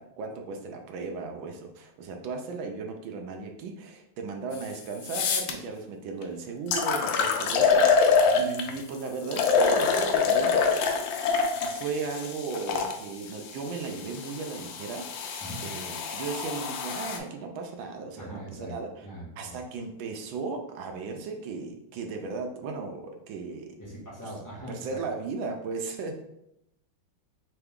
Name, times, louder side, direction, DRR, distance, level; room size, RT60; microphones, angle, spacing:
voice 1, 0.0-10.9 11.6-15.1 15.6-19.1 19.4-23.8 24.2-24.3 24.7-26.2, right 4 dB, 75° right, 3 dB, 1.3 m, -36 dB
sound 1, 4.5-4.6 5.0-5.5 6.2-6.3 6.7-8.8 9.3-12.9 13.8-17.2, left 5 dB, 75° left, 1.2 m, -25 dB
voice 2, 18.1-18.7 19.0-19.6 23.8-25.0, right 1 dB, 10° left, -8 dB, 1.1 m, -41 dB
3.8 x 3.4 x 3.5 m, 0.82 s
omnidirectional pair, 2.3 m